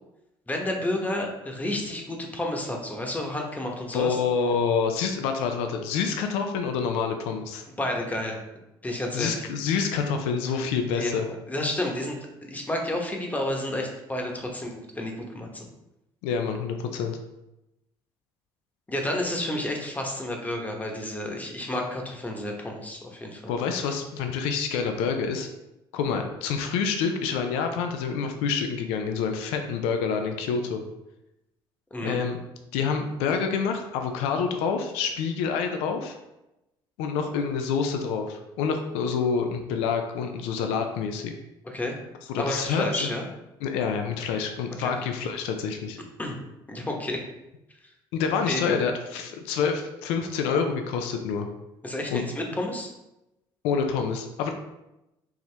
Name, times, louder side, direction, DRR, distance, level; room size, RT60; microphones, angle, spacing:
voice 1, 0.5-4.2 7.8-8.4 8.8-9.4 10.9-15.7 18.9-23.5 31.9-32.2 41.6-42.0 42.4-43.3 44.8-44.9 46.2-46.4 46.7-47.2 48.5-48.8 51.8-52.9, left 1 dB, 15° left, 1 dB, 0.9 m, -31 dB
voice 2, 3.9-7.6 9.1-11.2 16.2-17.2 23.5-25.5 25.9-30.8 32.0-32.4 32.7-36.2 37.0-41.3 42.3-43.1 43.6-46.0 48.1-51.5 52.1-52.2 53.6-54.5, left 6 dB, 90° left, 5 dB, 0.5 m, -27 dB
4.5 x 2.9 x 3.3 m, 0.92 s
supercardioid pair, 90°, 10 cm